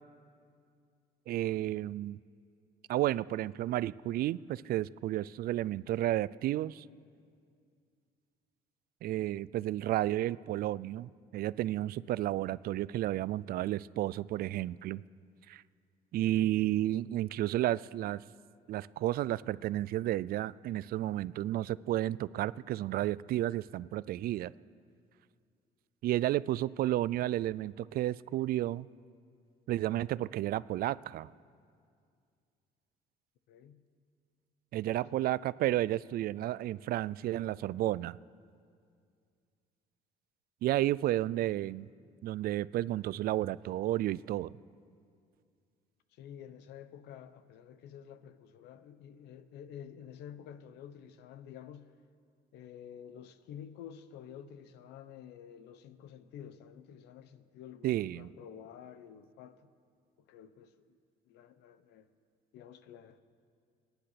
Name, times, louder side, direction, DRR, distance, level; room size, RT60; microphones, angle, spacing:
voice 1, 1.3-2.2 2.9-6.8 9.0-15.0 15.5-15.6 16.1-18.2 18.7-24.5 26.0-28.9 29.7-31.3 34.7-38.2 40.6-41.9 42.2-44.5 57.8-58.3, right 14 dB, 60° right, 20 dB, 0.4 m, -32 dB
voice 2, 33.5-33.9 34.9-35.2 41.0-41.2 46.1-51.9 52.5-59.7 60.3-61.0 61.3-62.1 62.5-63.2, left 9 dB, 85° left, 13 dB, 0.9 m, -50 dB
24.5 x 10.0 x 5.9 m, 2.3 s
cardioid pair, 110°, 17 cm